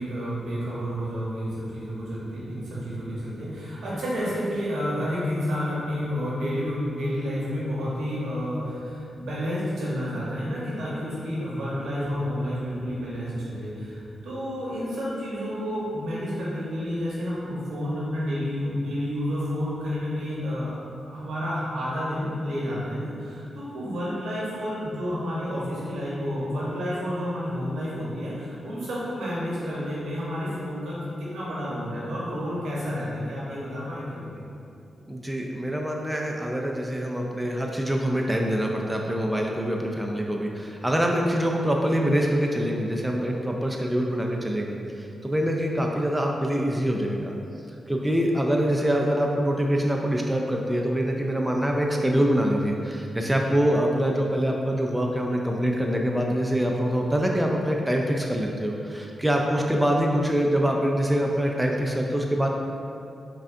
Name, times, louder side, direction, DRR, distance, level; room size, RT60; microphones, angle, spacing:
voice 1, 0.0-20.8 21.1-34.4, equal, 80° right, -7 dB, 1.0 m, -30 dB
voice 2, 35.1-47.3 47.9-62.5, equal, 10° right, 0 dB, 0.4 m, -25 dB
5.0 x 2.3 x 2.6 m, 2.7 s
supercardioid pair, 45°, 0 cm